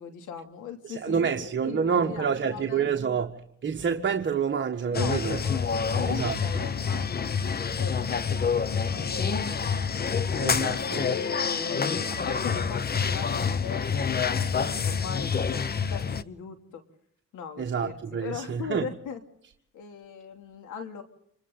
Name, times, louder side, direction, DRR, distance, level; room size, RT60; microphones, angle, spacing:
voice 1, 0.0-3.3 4.9-9.9 10.7-16.8 17.3-19.2 19.7-21.0, left 7 dB, 80° left, 2.8 m, -39 dB
voice 2, 0.8-3.4 3.6-5.4 5.9-6.6 10.4-11.0 17.6-18.9, right 6 dB, 40° right, 1.6 m, -28 dB
sound 1, 4.9-16.2, left 6 dB, 30° left, 0.9 m, -27 dB
29.5 x 26.5 x 3.9 m
cardioid pair, 90°, 30 cm